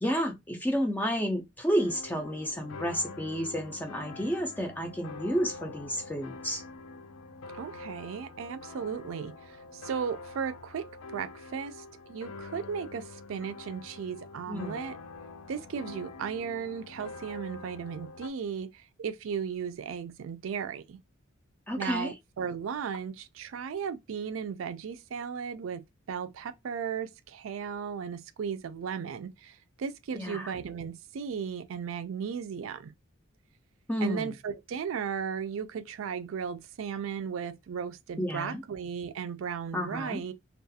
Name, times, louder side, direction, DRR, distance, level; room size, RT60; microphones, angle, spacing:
voice 1, 0.0-6.6 14.5-14.8 21.7-22.1 30.1-30.5 33.9-34.3 38.2-38.6 39.7-40.2, equal, 10° left, 0.3 m, -31 dB
sound 1, 1.8-18.3, left 3 dB, 85° left, 0.4 m, -45 dB
voice 2, 7.5-10.8 11.1-15.0 15.5-21.0 21.8-25.8 26.1-32.9 34.0-40.3, right 7 dB, 80° right, 0.4 m, -36 dB
2.3 x 2.3 x 2.6 m
head